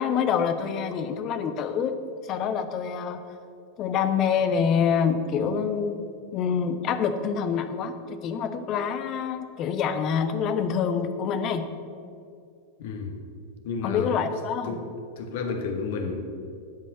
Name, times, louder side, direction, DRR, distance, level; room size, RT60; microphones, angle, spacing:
voice 1, 0.0-1.9 2.3-3.2 3.8-6.0 6.3-11.6 13.8-14.7, left 7 dB, 35° left, 9 dB, 0.8 m, -26 dB
voice 2, 12.8-13.2 13.6-14.2 14.6-14.8 15.2-16.2, left 4 dB, 55° left, 4 dB, 1.2 m, -31 dB
9.4 x 5.5 x 7.6 m, 2.4 s
figure-of-eight pair, 90°, 0 cm